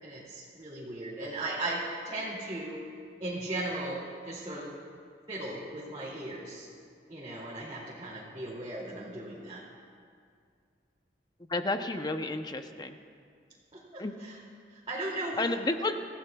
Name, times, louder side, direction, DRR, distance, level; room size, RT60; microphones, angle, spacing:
voice 1, 0.0-2.8 3.2-4.7 5.3-6.7 7.1-9.6 13.7-14.4 14.7-15.5, right 2 dB, 30° right, -8 dB, 2.4 m, -37 dB
voice 2, 11.5-13.0 14.0-14.1 15.4-16.0, left 2 dB, 25° left, 7 dB, 0.7 m, -31 dB
25.0 x 15.5 x 2.3 m, 2.2 s
head